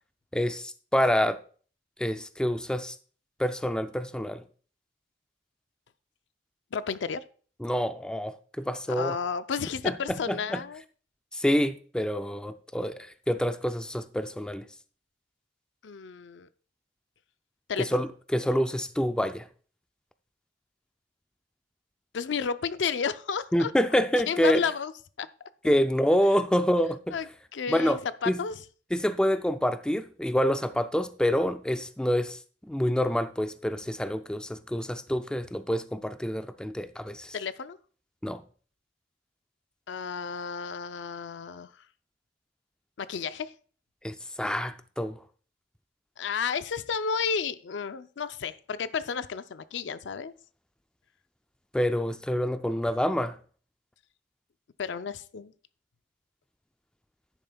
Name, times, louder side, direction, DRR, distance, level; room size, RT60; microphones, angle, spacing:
voice 1, 0.3-1.4 2.0-3.0 3.4-4.4 7.6-9.2 9.8-10.6 11.3-14.7 17.8-19.5 23.5-24.6 25.6-27.2 27.7-28.0 28.3-28.4 28.9-37.3 38.2-38.4 44.0-45.2 51.7-53.4, equal, 5° left, 0.3 m, -27 dB
voice 2, 6.7-7.2 8.9-10.8 15.8-16.5 17.7-18.0 22.1-23.7 24.3-24.9 25.2-25.3 27.1-28.6 37.3-37.8 39.9-41.7 43.0-43.5 46.2-50.3 54.8-55.5, left 6 dB, 70° left, 0.5 m, -32 dB
10.5 x 9.0 x 2.3 m
head